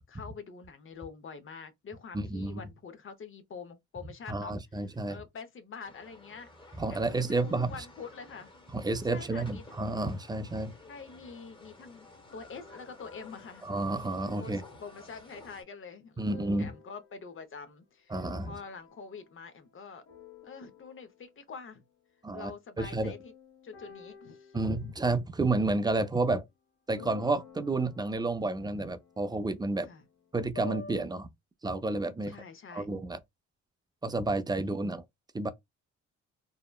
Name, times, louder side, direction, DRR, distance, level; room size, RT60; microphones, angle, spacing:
voice 1, 0.1-8.5 9.0-9.6 10.9-13.6 14.4-20.0 20.4-21.8 22.3-23.3 23.6-24.6 29.8-30.0 32.2-32.9 34.6-34.8, left 5 dB, 45° left, 0.7 m, -46 dB
voice 2, 2.1-2.6 4.3-5.2 6.8-7.8 8.7-10.7 13.6-14.6 16.2-16.7 18.1-18.5 22.2-22.5 22.8-23.1 24.5-26.4 26.9-29.9 30.3-31.3 31.6-32.3 32.8-33.2 34.0-35.0 35.3-35.5, right 2 dB, 15° right, 0.4 m, -30 dB
sound 1, 5.8-15.6, left 2 dB, 15° left, 1.0 m, -53 dB
sound 2, 12.0-17.5 18.2-19.8 20.1-21.3 23.0-26.0 27.0-31.1, left 4 dB, 60° left, 1.3 m, -52 dB
2.8 x 2.1 x 2.2 m
cardioid pair, 90°, 30 cm